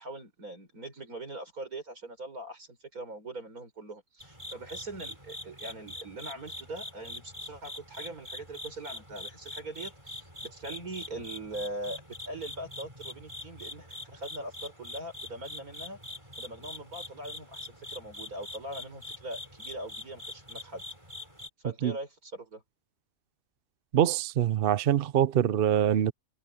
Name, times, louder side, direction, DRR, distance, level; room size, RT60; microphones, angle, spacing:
voice 1, 0.0-16.0 16.4-20.8 21.6-22.6, right 2 dB, 90° right, 6.3 m, -41 dB
sound 1, 4.2-21.5, left 1 dB, 20° right, 7.1 m, -44 dB
voice 2, 23.9-26.1, right 10 dB, 55° right, 0.7 m, -24 dB
omnidirectional pair, 1.5 m